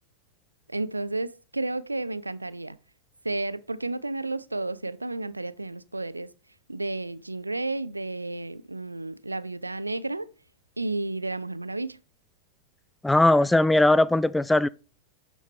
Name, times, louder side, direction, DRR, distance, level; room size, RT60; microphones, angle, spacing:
voice 1, 0.7-2.8 3.2-6.3 6.7-10.3 10.8-12.0, right 2 dB, 85° right, 0.5 m, -32 dB
voice 2, 13.0-14.7, left 2 dB, 5° left, 0.4 m, -19 dB
11.5 x 7.3 x 3.4 m
figure-of-eight pair, 90°, 0 cm